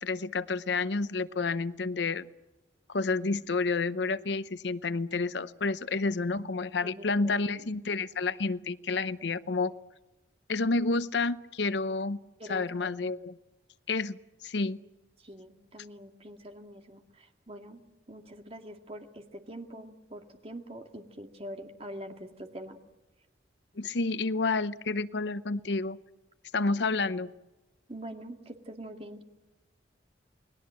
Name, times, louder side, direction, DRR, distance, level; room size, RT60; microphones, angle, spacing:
voice 1, 0.0-2.3 2.9-9.7 10.5-12.2 12.5-13.4 13.9-14.8 23.8-26.0 26.5-27.3, left 3 dB, 75° left, 15 dB, 0.7 m, -30 dB
voice 2, 6.8-7.4 9.6-9.7 12.4-12.9 15.2-17.8 18.1-22.8 26.6-26.8 27.9-29.2, right 1 dB, 35° right, 4 dB, 2.2 m, -44 dB
29.0 x 20.0 x 7.7 m, 1.1 s
head